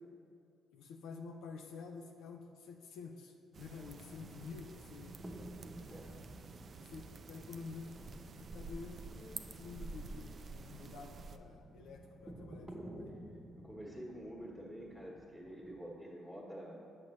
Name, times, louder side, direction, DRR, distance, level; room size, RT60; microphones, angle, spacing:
voice 1, 0.7-5.2 6.8-13.1, left 4 dB, 85° left, 2 dB, 0.5 m, -50 dB
sound 1, 3.5-11.4, right 3 dB, 45° right, 0.3 m, -50 dB
sound 2, 3.8-15.8, right 1 dB, 20° right, 0.8 m, -53 dB
voice 2, 5.7-6.1 13.6-16.7, equal, 5° left, -4 dB, 1.2 m, -48 dB
7.7 x 5.9 x 3.1 m, 2.4 s
cardioid pair, 90°, 0 cm